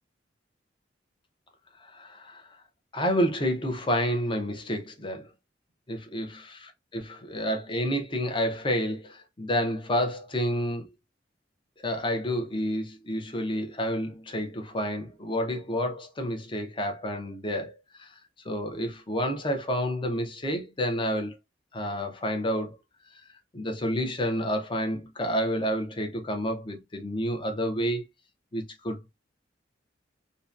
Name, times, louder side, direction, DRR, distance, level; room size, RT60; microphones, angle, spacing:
voice 1, 1.8-2.5 2.9-5.3 5.9-10.9 11.8-18.1 18.4-21.3 21.7-22.8 23.1-23.2 23.5-28.1 28.5-29.2, equal, 25° left, 0.6 m, -29 dB
2.7 x 2.1 x 2.3 m
head